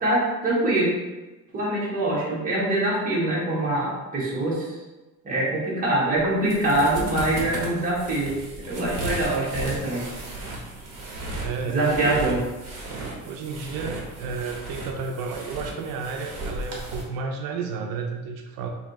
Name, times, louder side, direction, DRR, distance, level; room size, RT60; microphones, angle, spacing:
voice 1, 0.0-0.9 1.5-4.7 5.2-8.3 8.7-10.0 11.6-12.4, right 1 dB, 25° right, -6 dB, 1.2 m, -24 dB
sound 1, 6.1-17.0, right 2 dB, 45° right, 1.0 m, -35 dB
voice 2, 11.4-12.4 13.2-18.7, right 5 dB, 90° right, 3 dB, 0.5 m, -32 dB
3.0 x 2.8 x 3.9 m, 1.1 s
cardioid pair, 175°, 34 cm